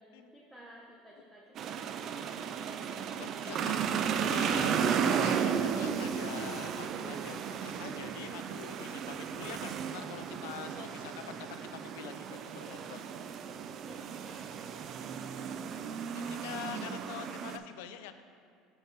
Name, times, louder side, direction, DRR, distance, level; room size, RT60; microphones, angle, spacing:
voice 1, 0.0-2.5 3.2-3.5 10.7-11.0 13.8-14.7 15.2-15.3, right 1 dB, 10° right, -5 dB, 1.0 m, -54 dB
sound 1, 1.5-17.6, right 7 dB, 50° right, 0.3 m, -34 dB
voice 2, 3.2-13.1 16.1-18.2, left 10 dB, 80° left, 10 dB, 0.3 m, -45 dB
5.2 x 3.8 x 5.8 m, 2.4 s
supercardioid pair, 90°, 0 cm